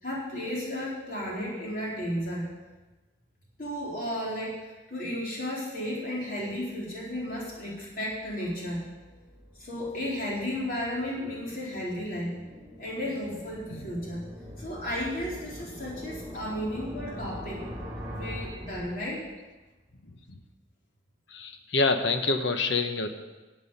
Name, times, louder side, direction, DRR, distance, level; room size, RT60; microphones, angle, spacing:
voice 1, 0.0-2.5 3.6-8.8 9.6-12.4 12.8-14.2 14.6-17.6 18.2-19.3, equal, 45° left, -5 dB, 4.1 m, -33 dB
sound 1, 6.6-19.5, equal, 5° right, 3.2 m, -43 dB
voice 2, 20.0-20.4 21.3-23.1, left 3 dB, 75° left, 7 dB, 1.1 m, -27 dB
14.5 x 8.5 x 5.6 m, 1.2 s
head